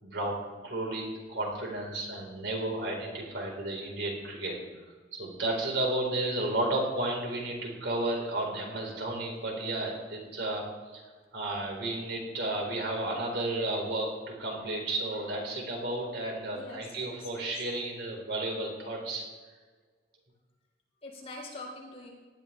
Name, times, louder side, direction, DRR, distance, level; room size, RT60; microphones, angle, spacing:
voice 1, 0.0-4.6 5.1-10.7 10.9-11.0 11.3-19.2, right 1 dB, 75° right, -1 dB, 4.7 m, -33 dB
voice 2, 16.5-17.5 21.0-22.1, left 2 dB, 35° left, -2 dB, 4.4 m, -44 dB
19.0 x 12.5 x 3.6 m, 1.4 s
head